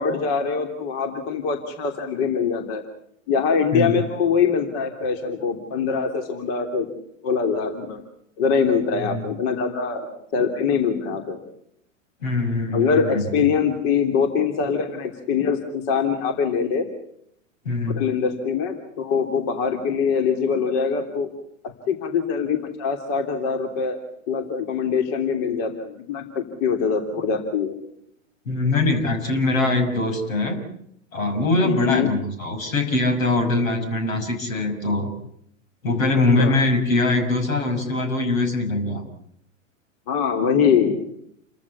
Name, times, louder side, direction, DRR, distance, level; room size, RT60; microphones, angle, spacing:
voice 1, 0.0-2.8 3.3-6.9 7.2-8.0 8.4-11.4 12.7-16.9 17.9-21.3 21.6-24.0 24.3-27.7 31.6-32.1 36.4-36.6 40.1-41.0, left 6 dB, 45° left, 6 dB, 3.2 m, -23 dB
voice 2, 3.7-4.0 9.0-9.3 12.2-13.4 17.6-18.0 28.5-30.6 31.1-35.1 35.8-39.0, left 2 dB, 85° left, 7 dB, 6.1 m, -22 dB
29.0 x 15.0 x 8.4 m, 0.73 s
hypercardioid pair, 120°, 39 cm